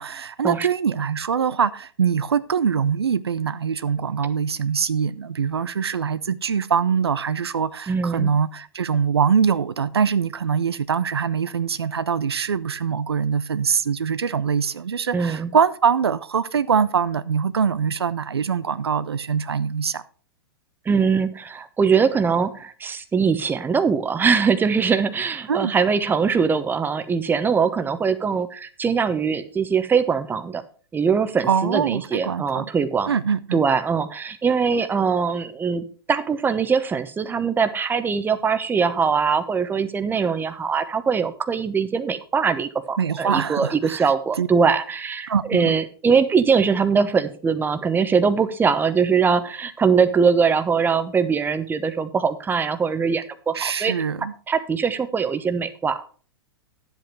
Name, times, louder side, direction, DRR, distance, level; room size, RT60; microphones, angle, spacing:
voice 1, 0.0-20.0 25.5-25.7 31.5-32.7 33.0-33.6 43.0-44.1 44.4-44.5 45.3-45.7 53.5-54.3, right 7 dB, 90° right, 0.5 m, -23 dB
voice 2, 7.9-8.3 15.1-15.5 20.9-30.6 30.9-33.1 33.5-53.9 54.5-56.2, right 5 dB, 15° right, 1.0 m, -22 dB
10.0 x 8.0 x 4.6 m
hypercardioid pair, 110°, 13 cm